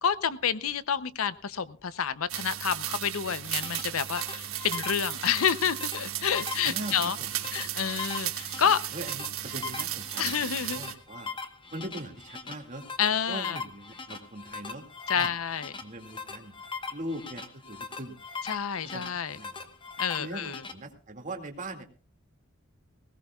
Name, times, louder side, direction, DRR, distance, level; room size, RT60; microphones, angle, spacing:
voice 1, 0.0-7.2 7.5-8.8 10.2-10.8 13.0-13.6 15.1-15.7 18.5-19.4 20.0-20.6, left 8 dB, 80° left, 15 dB, 0.7 m, -29 dB
sound 1, 2.3-10.9, right 12 dB, 90° right, 1.4 m, -35 dB
sound 2, 3.3-20.7, left 4 dB, 25° left, 1.2 m, -40 dB
voice 2, 6.6-7.3 7.6-7.8 8.9-11.3 11.7-12.8 13.3-14.9 15.1-15.3 15.8-16.5 16.9-18.2 18.8-19.7 20.2-21.8, right 1 dB, 40° right, 4 dB, 2.2 m, -41 dB
19.5 x 18.0 x 2.3 m, 0.38 s
head